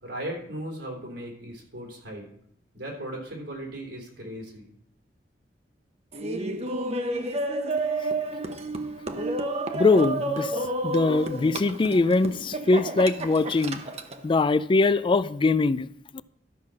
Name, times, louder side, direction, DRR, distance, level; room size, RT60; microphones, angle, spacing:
voice 1, 0.0-2.2 2.7-4.7, right 1 dB, 90° right, 3.6 m, -37 dB
Laughter, 6.1-14.2, right 2 dB, 35° right, 0.9 m, -30 dB
voice 2, 9.7-10.5 10.8-13.8 14.2-15.9, left 3 dB, 30° left, 0.3 m, -22 dB
12.5 x 5.7 x 6.4 m
head